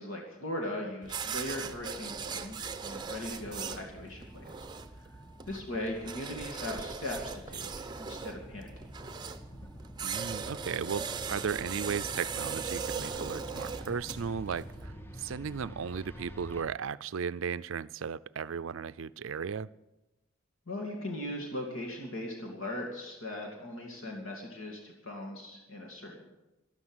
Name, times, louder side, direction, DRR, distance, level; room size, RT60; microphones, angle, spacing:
voice 1, 0.0-4.7 5.0-5.1 5.5-7.2 7.5-8.7 20.7-26.3, left 1 dB, 70° left, 0 dB, 2.6 m, -39 dB
sound 1, 1.0-14.9, right 6 dB, 20° right, 0.8 m, -39 dB
sound 2, 3.4-16.6, equal, 10° left, 0.8 m, -49 dB
voice 2, 10.0-19.7, right 6 dB, 65° right, 17 dB, 0.4 m, -36 dB
13.5 x 12.0 x 8.1 m, 1.0 s
head